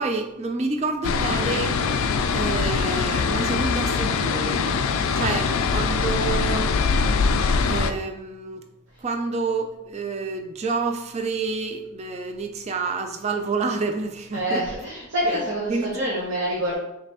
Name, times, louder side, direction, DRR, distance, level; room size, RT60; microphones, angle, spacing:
voice 1, 0.0-1.8 2.3-4.7 5.1-6.7 7.6-8.6 9.0-14.6 15.3-15.4 15.7-15.9, right 3 dB, 30° right, 6 dB, 0.4 m, -28 dB
sound 1, 1.0-7.9, left 5 dB, 65° left, 0.3 m, -23 dB
voice 2, 14.3-16.7, right 1 dB, 60° right, -7 dB, 1.1 m, -26 dB
5.0 x 3.2 x 2.9 m, 0.90 s
head